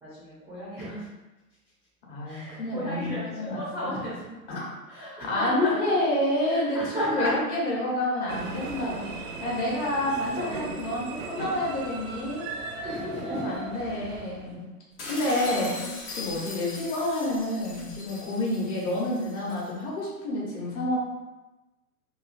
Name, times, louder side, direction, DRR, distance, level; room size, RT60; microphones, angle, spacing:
voice 1, 0.0-1.1 2.2-4.3 4.9-5.9 6.5-7.3 12.8-14.1 15.4-15.9 16.3-16.6, equal, 5° right, -12 dB, 0.4 m, -34 dB
voice 2, 2.1-4.0 4.5-4.7 5.2-9.0 9.4-12.5 13.3-14.7 15.1-15.8 16.2-21.0, left 1 dB, 45° left, -4 dB, 1.2 m, -29 dB
sound 1, 8.3-14.6, right 3 dB, 55° right, 0.5 m, -37 dB
sound 2, 15.0-19.7, left 2 dB, 75° left, 1.0 m, -40 dB
2.9 x 2.4 x 2.5 m, 1.1 s
hypercardioid pair, 115°, 46 cm